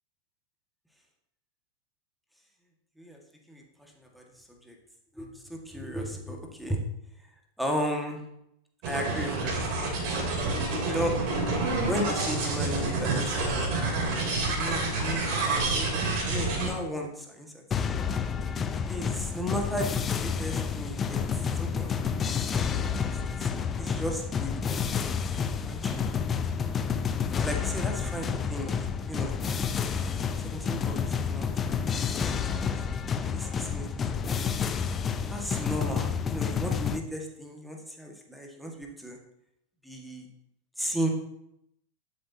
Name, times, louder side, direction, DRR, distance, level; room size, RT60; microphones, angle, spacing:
voice 1, 3.5-4.2 4.6-4.8 5.2-6.8 7.6-8.2 8.9-9.9 10.9-11.1 11.9-14.0 14.3-17.9 18.9-21.2 21.6-23.0 23.4-23.5 23.8-25.1 25.6-26.2 27.4-28.8 29.1-29.4 30.0-30.2 30.4-32.2 32.6-32.7 33.3-33.9 34.2-34.4 35.3-39.2 39.8-40.3 40.8-41.1, equal, ahead, 1 dB, 1.7 m, -35 dB
sound 1, 8.8-16.7, right 3 dB, 45° right, 3.3 m, -28 dB
sound 2, 17.7-37.0, left 6 dB, 20° left, 0.6 m, -29 dB
12.0 x 8.3 x 2.8 m, 0.79 s
figure-of-eight pair, 90°, 0 cm